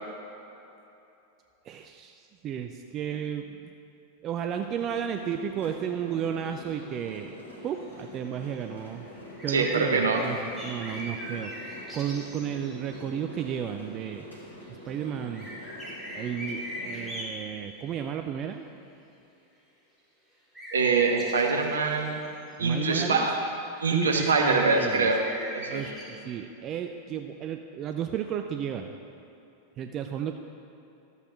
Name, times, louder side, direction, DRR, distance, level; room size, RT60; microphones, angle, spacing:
voice 1, 1.7-3.7 4.2-7.4 7.6-9.1 9.4-11.6 11.9-14.3 14.7-15.5 16.1-18.6 22.6-23.2 23.9-25.1 25.7-28.9 29.8-30.3, right 9 dB, 30° right, 6 dB, 0.3 m, -33 dB
sound 1, 4.5-17.2, left 1 dB, 85° left, 2.0 m, -45 dB
sound 2, 6.4-7.1 7.5-7.6 7.8-7.9 8.3-8.6 8.9-13.1 14.0-14.3 14.6-17.4 20.5-23.2 23.5-23.6 23.9-26.3, equal, 10° right, 2.0 m, -40 dB
voice 2, 9.5-10.2 20.7-22.2 22.6-23.4 23.8-25.2 25.5-25.8, right 4 dB, 70° right, 2 dB, 0.9 m, -24 dB
12.0 x 8.0 x 3.0 m, 2.8 s
figure-of-eight pair, 90°, 0 cm